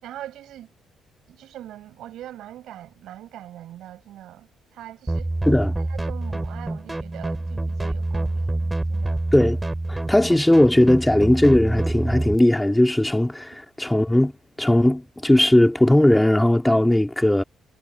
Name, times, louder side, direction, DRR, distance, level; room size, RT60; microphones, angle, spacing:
voice 1, 0.0-0.7 1.3-5.3 5.6-9.2, right 12 dB, 80° right, 4.9 m, -42 dB
sound 1, 5.1-12.4, right 2 dB, 15° right, 6.7 m, -27 dB
voice 2, 9.9-14.3 14.6-17.4, left 1 dB, 10° left, 2.4 m, -18 dB
cardioid pair, 90°, 0 cm